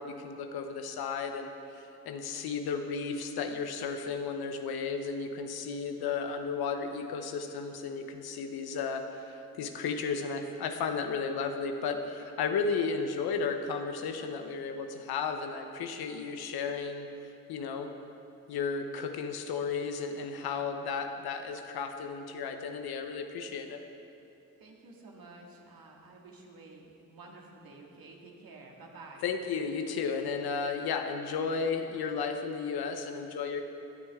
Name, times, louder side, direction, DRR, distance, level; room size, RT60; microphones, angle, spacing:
voice 1, 0.0-17.1 17.5-17.9 18.5-23.8 29.2-33.6, left 5 dB, 85° left, 6 dB, 0.9 m, -34 dB
voice 2, 24.6-29.3, right 3 dB, 70° right, -1 dB, 2.0 m, -51 dB
15.5 x 10.0 x 3.6 m, 2.8 s
supercardioid pair, 50°, 37 cm